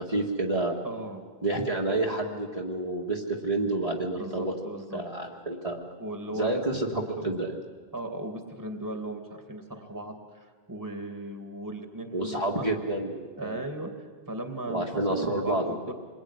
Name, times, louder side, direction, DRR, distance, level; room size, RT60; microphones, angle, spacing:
voice 1, 0.0-0.8 1.4-4.5 4.9-5.8 6.3-7.6 12.1-13.6 14.7-15.6, right 2 dB, 35° right, -2 dB, 2.3 m, -29 dB
voice 2, 0.8-1.2 4.2-5.0 6.0-6.6 6.9-7.4 7.9-12.8 13.4-15.9, right 1 dB, 15° right, 5 dB, 2.5 m, -37 dB
28.0 x 21.0 x 9.9 m, 1.5 s
omnidirectional pair, 1.1 m